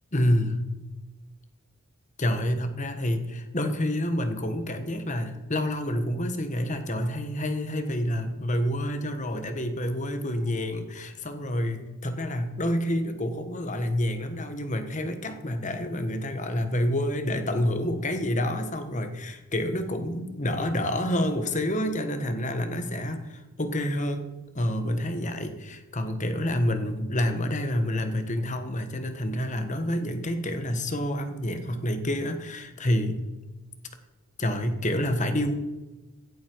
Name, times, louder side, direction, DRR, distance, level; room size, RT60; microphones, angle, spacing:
voice 1, 0.1-0.7 2.2-24.3 24.5-33.2 34.4-35.5, left 1 dB, 35° left, 8 dB, 1.4 m, -28 dB
16.0 x 12.0 x 4.7 m, 1.1 s
head